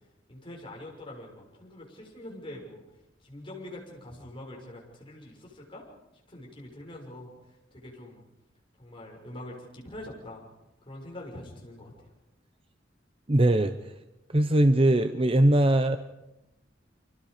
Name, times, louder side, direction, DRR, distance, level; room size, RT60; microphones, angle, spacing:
voice 1, 0.3-2.8 3.2-5.9 6.3-7.3 7.7-8.2 8.8-10.4 10.8-12.1, left 1 dB, 30° left, -2 dB, 6.4 m, -44 dB
voice 2, 13.3-13.8 14.3-16.0, right 1 dB, 30° right, 9 dB, 0.8 m, -21 dB
29.0 x 25.5 x 5.1 m, 0.95 s
head